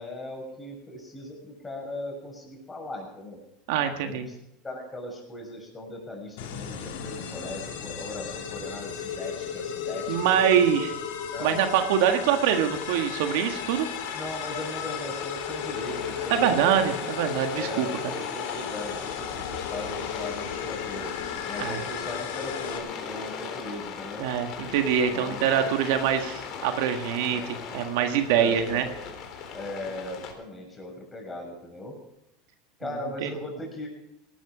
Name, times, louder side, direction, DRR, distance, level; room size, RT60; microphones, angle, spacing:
voice 1, 0.0-3.4 4.0-4.4 4.6-10.9 11.3-11.6 14.1-16.8 17.6-21.1 21.5-24.2 25.1-25.6 27.3-27.5 28.3-28.9 29.5-31.9 32.8-33.9, left 1 dB, 15° left, 1 dB, 6.3 m, -38 dB
voice 2, 3.7-4.3 10.1-10.9 11.4-13.9 16.3-17.9 21.6-21.8 24.2-28.9 33.2-33.3, right 9 dB, 70° right, 6 dB, 1.6 m, -24 dB
sound 1, 6.4-22.8, left 8 dB, 80° left, 2.9 m, -35 dB
Rain, 12.7-30.3, left 6 dB, 50° left, 3.6 m, -38 dB
18.0 x 12.5 x 5.0 m, 0.85 s
supercardioid pair, 115°, 0 cm